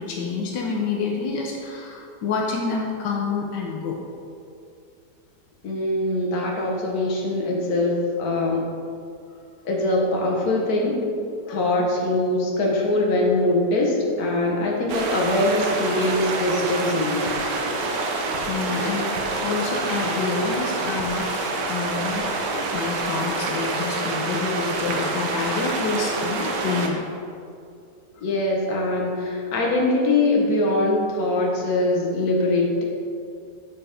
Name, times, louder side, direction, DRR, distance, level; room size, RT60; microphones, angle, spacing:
voice 1, 0.0-4.0 11.4-11.6 18.5-21.3 21.7-27.1 28.1-28.2, left 4 dB, 85° left, -1 dB, 1.5 m, -28 dB
voice 2, 5.6-8.7 9.6-11.0 11.5-17.2 28.2-32.8, left 2 dB, 65° left, -1 dB, 1.6 m, -22 dB
sound 1, 14.9-26.9, right 2 dB, 85° right, 1.5 m, -27 dB
7.0 x 5.7 x 5.0 m, 2.4 s
omnidirectional pair, 1.8 m